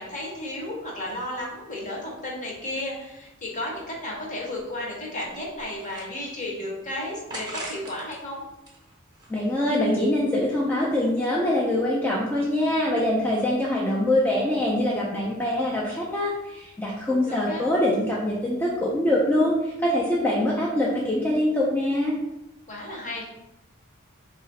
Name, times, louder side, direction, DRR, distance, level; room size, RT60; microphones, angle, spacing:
voice 1, 0.0-8.4 17.1-17.7 22.7-23.2, left 1 dB, 40° left, -2 dB, 0.9 m, -33 dB
sound 1, 5.2-6.6 7.3-8.2 8.5-9.7, right 1 dB, 20° right, 0.7 m, -40 dB
voice 2, 9.3-22.2, left 1 dB, 10° left, -5 dB, 0.4 m, -24 dB
2.9 x 2.4 x 4.1 m, 0.93 s
head